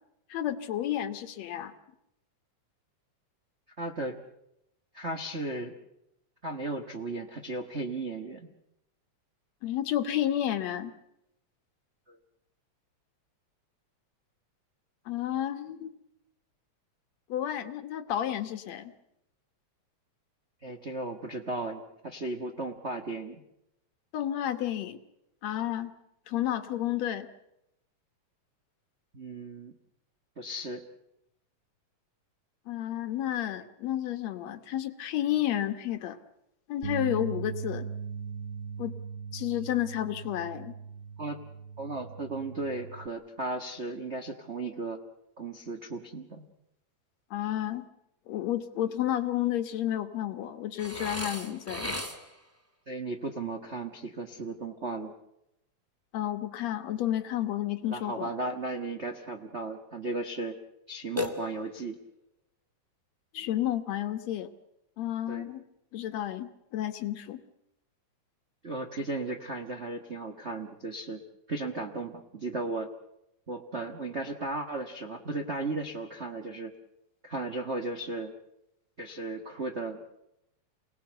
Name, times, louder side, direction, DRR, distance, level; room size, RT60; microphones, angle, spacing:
voice 1, 0.3-1.7 9.6-10.9 15.1-15.9 17.3-18.9 24.1-25.0 25.4-25.9 26.3-27.3 32.7-36.2 36.7-37.9 38.8-39.0 39.3-40.7 47.3-47.9 48.3-52.0 56.1-58.3 63.3-64.5 65.0-65.6 65.9-67.4, left 12 dB, 65° left, 9 dB, 2.3 m, -31 dB
voice 2, 3.8-4.2 4.9-5.7 6.4-8.5 12.1-12.2 20.6-23.4 29.1-29.7 30.4-30.8 41.2-41.4 41.8-45.0 45.4-46.5 52.9-55.1 57.9-60.6 60.9-62.0 65.3-65.5 68.6-71.2 71.5-72.9 73.5-76.7 77.2-78.3 79.0-80.2, right 2 dB, 40° right, 4 dB, 0.9 m, -35 dB
sound 1, 36.8-43.1, right 6 dB, 70° right, 1.0 m, -39 dB
Burping eructation, 50.8-52.5 61.2-61.9, left 1 dB, 5° right, 1.7 m, -36 dB
28.5 x 19.0 x 8.0 m, 0.85 s
omnidirectional pair, 3.4 m